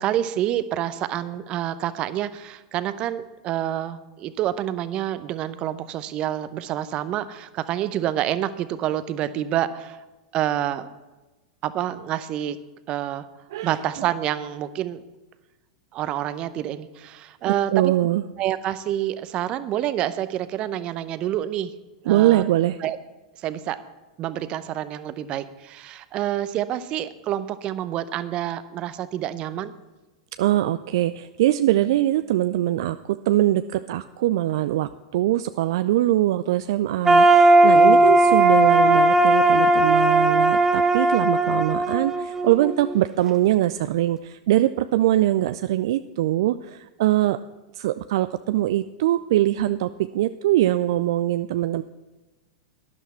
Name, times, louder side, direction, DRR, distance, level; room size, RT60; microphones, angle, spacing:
voice 1, 0.0-10.0 10.3-10.9 11.6-12.6 12.9-13.3 13.6-15.0 15.9-17.9 18.4-21.7 22.1-22.5 22.8-23.0 23.4-23.8 24.2-29.7 37.7-38.2, right 12 dB, 40° right, 14 dB, 0.7 m, -28 dB
voice 2, 17.5-18.2 22.1-22.8 30.4-47.4 47.8-51.8, right 14 dB, 60° right, 12 dB, 0.3 m, -22 dB
sound 1, 37.0-43.0, right 2 dB, 15° right, 1.0 m, -17 dB
12.5 x 11.5 x 4.4 m, 1.1 s
figure-of-eight pair, 95°, 3 cm